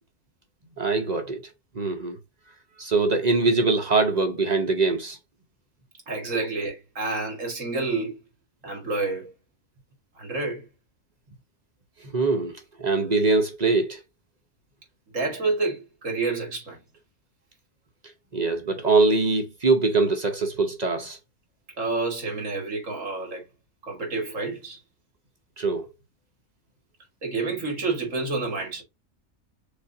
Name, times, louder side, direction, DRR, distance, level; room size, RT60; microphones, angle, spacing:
voice 1, 0.8-1.4 1.7-2.2 2.8-5.2 12.1-14.0 18.3-21.2 25.6-25.8, right 3 dB, 35° right, 0.8 m, -23 dB
voice 2, 6.1-8.2 8.6-9.3 10.2-10.6 15.1-16.8 21.8-23.4 23.8-24.8 27.2-28.8, right 3 dB, 65° right, 2.3 m, -29 dB
6.5 x 2.5 x 2.7 m
omnidirectional pair, 1.4 m